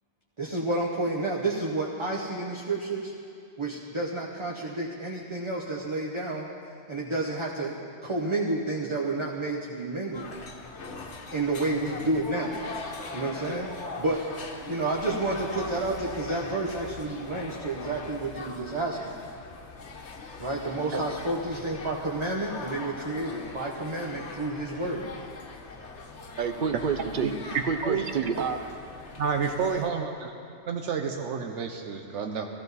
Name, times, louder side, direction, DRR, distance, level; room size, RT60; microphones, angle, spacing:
voice 1, 0.4-3.1 3.6-6.5 6.9-10.3 11.3-12.5 13.1-13.7 14.0-14.2 14.6-19.2 20.4-25.1, right 2 dB, 30° right, -2 dB, 0.9 m, -30 dB
sound 1, 10.1-29.9, left 4 dB, 70° left, 1.3 m, -41 dB
voice 2, 26.4-27.4 27.7-28.6, right 6 dB, 55° right, 8 dB, 0.6 m, -28 dB
voice 3, 27.5-28.0 29.2-30.3 30.7-32.5, right 6 dB, 80° right, 4 dB, 1.1 m, -29 dB
14.5 x 14.5 x 4.1 m, 2.5 s
omnidirectional pair, 1.2 m